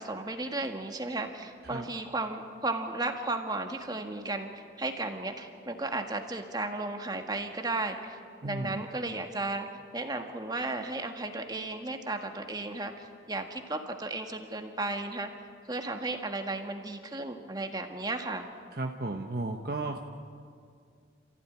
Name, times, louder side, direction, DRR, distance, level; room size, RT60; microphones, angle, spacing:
voice 1, 0.0-9.7 9.9-15.3 15.7-18.5, right 2 dB, 20° right, 4 dB, 1.7 m, -34 dB
voice 2, 8.4-8.9 18.7-20.0, right 2 dB, 55° right, 3 dB, 1.1 m, -34 dB
29.0 x 15.5 x 9.7 m, 2.2 s
head